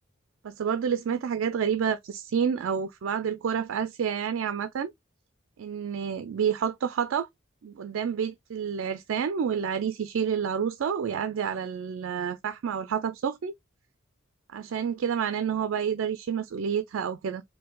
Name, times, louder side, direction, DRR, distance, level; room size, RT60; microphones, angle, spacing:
voice 1, 0.4-4.9 5.6-7.3 7.6-13.5 14.5-17.4, right 7 dB, 80° right, 0.4 m, -29 dB
4.4 x 2.6 x 2.2 m
head